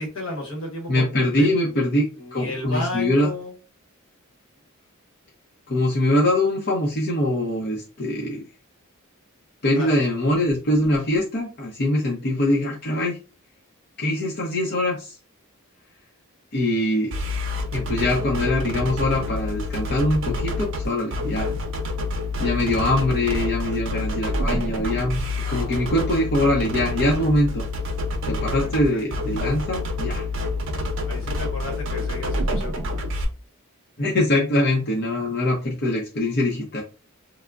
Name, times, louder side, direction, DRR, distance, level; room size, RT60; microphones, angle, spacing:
voice 1, 0.0-1.5 2.2-3.5 9.7-9.9 25.4-25.9 28.4-29.1 31.0-33.0, left 2 dB, 65° left, 1 dB, 1.0 m, -33 dB
voice 2, 0.9-3.3 5.7-8.4 9.6-13.2 14.0-15.1 16.5-17.1 17.7-21.5 22.4-25.2 25.5-27.6 28.3-30.2 34.0-36.8, left 1 dB, 50° left, -3 dB, 0.6 m, -23 dB
sound 1, 17.1-33.2, left 2 dB, 60° right, 0.6 m, -27 dB
3.3 x 2.0 x 2.3 m, 0.33 s
head